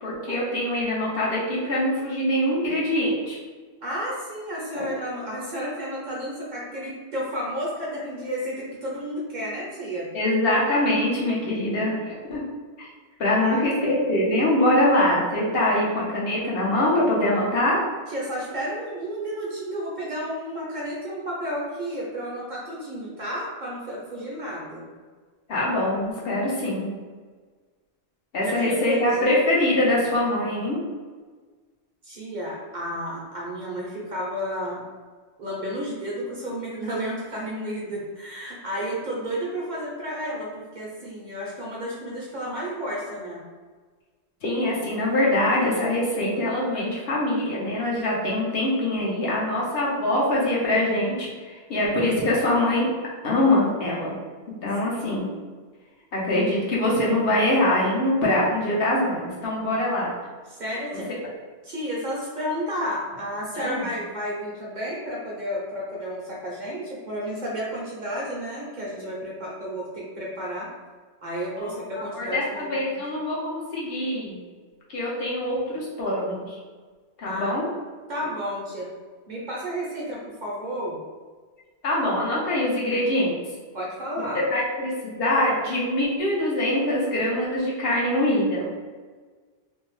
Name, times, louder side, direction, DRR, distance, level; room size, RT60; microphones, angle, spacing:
voice 1, 0.0-3.4 4.7-4.9 10.1-12.4 13.2-17.8 25.5-26.9 28.3-30.8 44.4-52.9 53.2-54.2 54.6-55.3 56.1-60.1 63.5-63.8 71.6-71.8 72.1-74.4 74.9-76.6 77.2-77.7 81.8-83.3 84.3-88.7, left 1 dB, 65° left, -5 dB, 0.9 m, -23 dB
voice 2, 3.8-10.1 13.4-13.6 18.1-24.9 28.4-29.4 32.0-34.9 35.4-43.4 60.5-61.1 61.6-70.7 71.2-73.0 77.2-77.5 78.1-78.9 79.3-81.0 83.7-84.4, equal, 50° right, -5 dB, 0.6 m, -32 dB
2.6 x 2.1 x 3.0 m, 1.5 s
omnidirectional pair, 1.1 m